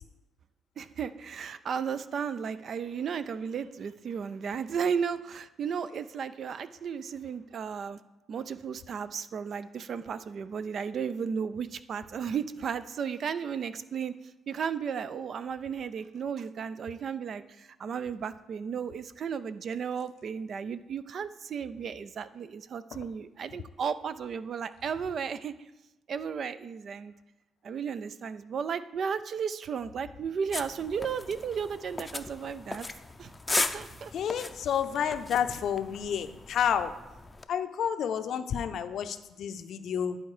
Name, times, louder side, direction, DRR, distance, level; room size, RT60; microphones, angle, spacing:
voice 1, 0.8-8.0 8.3-14.1 14.5-25.5 26.1-27.1 27.6-32.9 33.2-34.1, right 6 dB, 55° right, 14 dB, 0.4 m, -34 dB
sound 1, 30.5-37.5, left 3 dB, 20° left, 0.5 m, -37 dB
voice 2, 34.1-36.9 37.5-40.2, left 8 dB, 70° left, 11 dB, 0.5 m, -30 dB
10.5 x 4.4 x 4.9 m, 0.97 s
cardioid pair, 90°, 0 cm